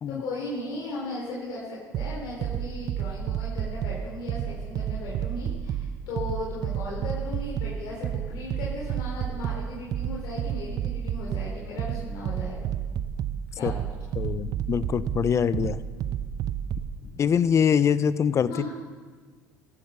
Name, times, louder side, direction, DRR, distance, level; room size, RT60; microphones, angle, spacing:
voice 1, 0.1-12.7 13.5-13.9 18.5-18.7, left 2 dB, 70° left, -5 dB, 4.0 m, -37 dB
sound 1, 1.9-17.0, right 9 dB, 55° right, 0.8 m, -31 dB
voice 2, 14.2-15.8 17.2-18.5, left 7 dB, 40° left, 16 dB, 0.6 m, -23 dB
15.5 x 9.7 x 6.7 m, 1.5 s
supercardioid pair, 95°, 8 cm